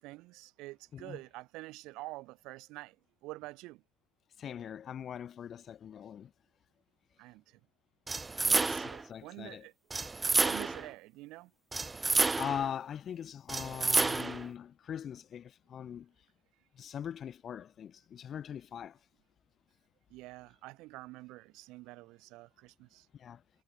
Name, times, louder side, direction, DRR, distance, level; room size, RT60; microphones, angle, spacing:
voice 1, 0.0-3.0 3.2-3.8 7.2-7.6 8.5-9.7 10.4-11.5 20.1-23.1, right 20 dB, 70° right, 5.9 m, -47 dB
voice 2, 4.4-6.3 8.4-8.6 9.0-9.7 12.1-16.1 16.8-19.0 23.1-23.4, left 9 dB, 35° left, 1.8 m, -41 dB
sound 1, 8.1-9.0 9.9-10.9 11.7-12.7 13.5-14.5, right 3 dB, 15° right, 1.5 m, -29 dB
cardioid pair, 140°, 0 cm